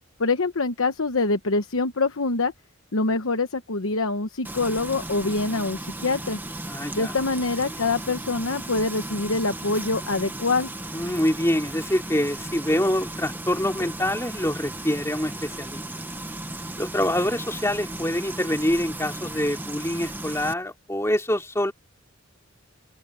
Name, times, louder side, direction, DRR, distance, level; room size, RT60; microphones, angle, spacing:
voice 1, 0.2-2.5 2.9-6.4 6.9-10.7, left 3 dB, 85° left, 1.0 m, -25 dB
Frying (food), 4.4-20.5, right 1 dB, 10° right, 1.0 m, -36 dB
voice 2, 6.7-7.1 10.9-15.8 16.8-21.7, left 1 dB, 15° left, 2.7 m, -25 dB
open air
head